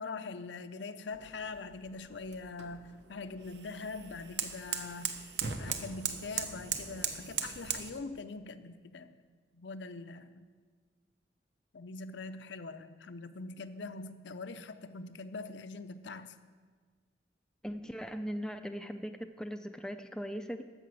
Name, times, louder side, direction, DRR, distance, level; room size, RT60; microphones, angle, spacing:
voice 1, 0.0-5.2 5.6-9.1 9.5-10.5 11.7-16.3, left 3 dB, 70° left, 11 dB, 0.6 m, -43 dB
sound 1, 1.1-7.9, right 7 dB, 65° right, 0.9 m, -39 dB
voice 2, 17.6-20.6, equal, 5° left, 7 dB, 0.4 m, -39 dB
12.5 x 5.9 x 7.7 m, 1.5 s
head